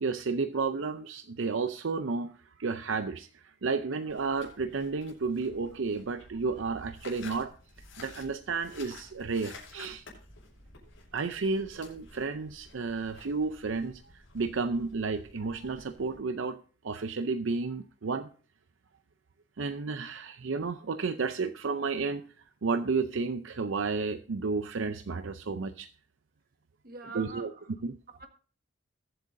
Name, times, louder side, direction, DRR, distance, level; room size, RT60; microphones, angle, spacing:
voice 1, 0.0-7.5 8.0-10.0 11.1-16.6 16.8-18.3 19.6-22.3 22.6-25.9 27.1-27.5 27.8-28.0, right 4 dB, 75° right, 0.6 m, -32 dB
sound 1, 4.1-16.2, left 3 dB, 80° left, 6.0 m, -52 dB
voice 2, 26.8-27.7 28.1-28.3, right 4 dB, 45° right, 1.6 m, -44 dB
21.5 x 7.8 x 2.6 m
head